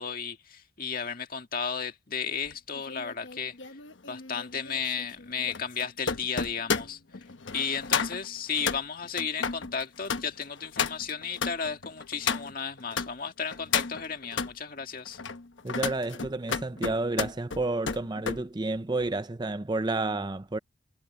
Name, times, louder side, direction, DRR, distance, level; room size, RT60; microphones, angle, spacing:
voice 1, 0.0-3.8 4.1-7.3 7.5-15.2, left 6 dB, 50° left, 2.0 m, -34 dB
sound 1, 2.5-13.1 13.5-14.5 15.1-18.4 18.8-19.1, left 6 dB, 75° left, 1.1 m, -33 dB
voice 2, 15.6-20.6, right 2 dB, 20° right, 0.6 m, -30 dB
head